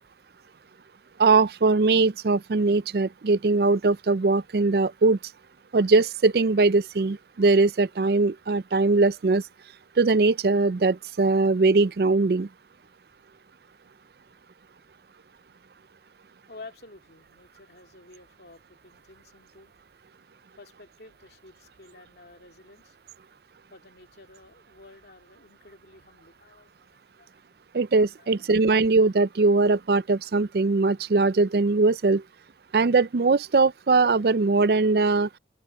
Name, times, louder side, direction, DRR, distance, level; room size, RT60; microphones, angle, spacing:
voice 1, 1.2-5.2 5.7-9.4 10.0-12.5 27.7-32.2 32.7-35.3, right 3 dB, 60° right, 0.5 m, -21 dB
voice 2, 16.5-19.7 20.6-23.0 23.7-27.4 28.2-28.3, left 3 dB, 65° left, 2.8 m, -50 dB
open air
head